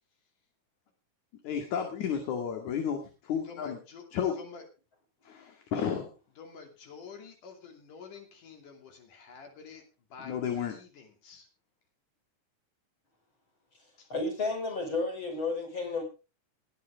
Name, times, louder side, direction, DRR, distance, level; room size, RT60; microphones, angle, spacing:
voice 1, 1.4-3.8 4.1-4.3 5.3-6.1 10.2-10.8, left 8 dB, 70° left, 4 dB, 3.5 m, -32 dB
voice 2, 3.5-4.1 4.4-4.6 6.4-9.8 10.1-10.4 10.7-11.5 14.0-14.1, left 5 dB, 85° left, 4 dB, 4.3 m, -48 dB
voice 3, 14.1-16.0, left 3 dB, 40° left, 3 dB, 5.9 m, -32 dB
20.5 x 9.5 x 3.6 m, 0.31 s
omnidirectional pair, 3.5 m